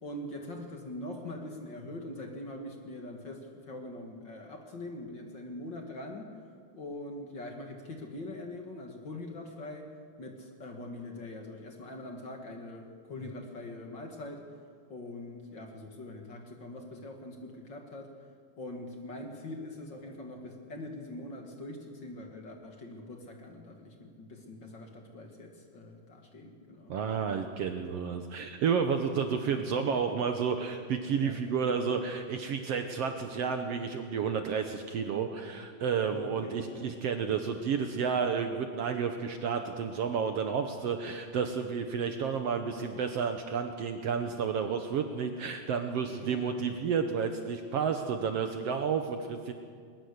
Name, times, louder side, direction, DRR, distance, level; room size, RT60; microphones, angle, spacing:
voice 1, 0.0-6.3 6.7-9.9 10.2-14.5 14.9-18.1 18.6-26.9 29.3-29.4 29.9-30.2 31.1-31.4 36.0-36.9 46.0-46.6, left 1 dB, 40° left, 2 dB, 2.2 m, -43 dB
voice 2, 26.9-49.5, right 6 dB, 65° right, 6 dB, 1.8 m, -31 dB
20.5 x 20.5 x 6.7 m, 2.1 s
omnidirectional pair, 3.5 m